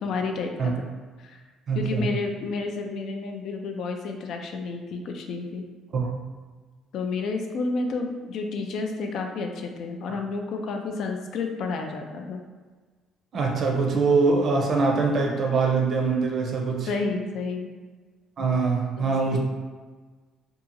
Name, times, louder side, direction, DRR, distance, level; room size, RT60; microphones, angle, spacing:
voice 1, 0.0-0.7 1.2-1.4 1.7-5.6 6.9-12.4 16.9-17.7 19.0-19.4, left 4 dB, 60° left, 4 dB, 0.3 m, -30 dB
voice 2, 1.7-2.1 5.9-6.1 13.3-16.9 18.4-19.4, right 4 dB, 45° right, 1 dB, 0.5 m, -23 dB
2.8 x 2.3 x 2.5 m, 1.4 s
cardioid pair, 120°, 0 cm